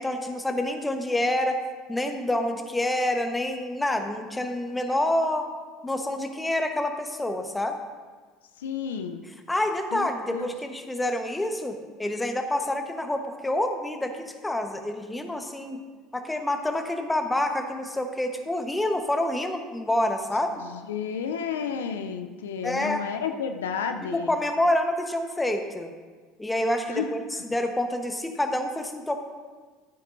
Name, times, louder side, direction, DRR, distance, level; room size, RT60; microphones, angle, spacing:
voice 1, 0.0-1.6 1.9-5.5 5.8-7.8 9.5-15.8 16.1-20.6 22.6-23.0 24.1-25.9 26.4-29.2, left 1 dB, 10° left, 5 dB, 1.0 m, -27 dB
voice 2, 8.6-9.2 9.9-10.5 20.7-24.3 26.9-27.1, left 7 dB, 85° left, 7 dB, 0.4 m, -31 dB
12.5 x 9.1 x 2.6 m, 1.4 s
hypercardioid pair, 70°, 0 cm